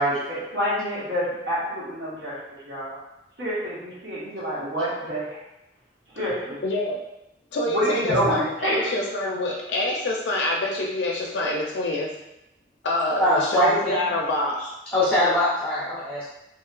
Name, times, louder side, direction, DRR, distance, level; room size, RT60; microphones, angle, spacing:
voice 1, 0.0-3.0 3.4-5.4 6.1-6.6 7.7-8.9, equal, 70° right, -9 dB, 1.2 m, -27 dB
voice 2, 6.6-7.0 7.5-12.1 12.8-14.6, left 1 dB, 80° left, -1 dB, 0.4 m, -26 dB
voice 3, 13.2-14.0 14.9-16.3, left 1 dB, 5° left, -10 dB, 0.6 m, -22 dB
3.0 x 2.8 x 2.4 m, 0.89 s
head